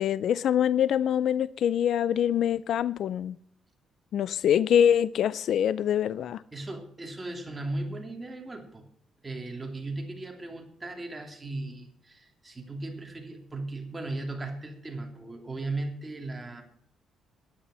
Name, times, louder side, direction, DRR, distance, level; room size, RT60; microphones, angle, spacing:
voice 1, 0.0-3.4 4.1-6.4, left 9 dB, 70° left, 0.4 m, -24 dB
voice 2, 6.5-8.9 9.2-16.6, right 2 dB, 20° right, 2.9 m, -37 dB
10.0 x 10.0 x 6.2 m
cardioid pair, 90°, 0 cm